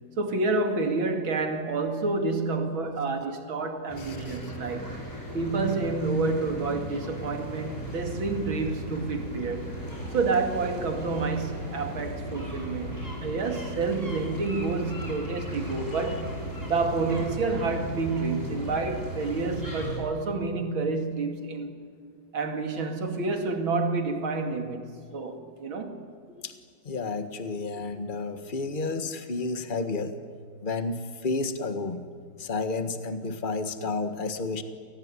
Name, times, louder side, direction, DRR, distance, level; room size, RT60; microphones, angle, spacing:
voice 1, 0.2-4.9 5.3-9.7 10.1-16.3 16.6-21.7 22.3-24.9 25.1-26.0, right 3 dB, 90° right, 3.2 m, -29 dB
sound 1, 3.9-20.0, right 1 dB, 10° left, 6.3 m, -36 dB
voice 2, 4.0-4.4 26.4-26.5 26.8-30.1 30.6-32.0 32.4-34.6, left 3 dB, 25° left, 1.6 m, -31 dB
29.0 x 19.0 x 9.8 m
omnidirectional pair, 2.1 m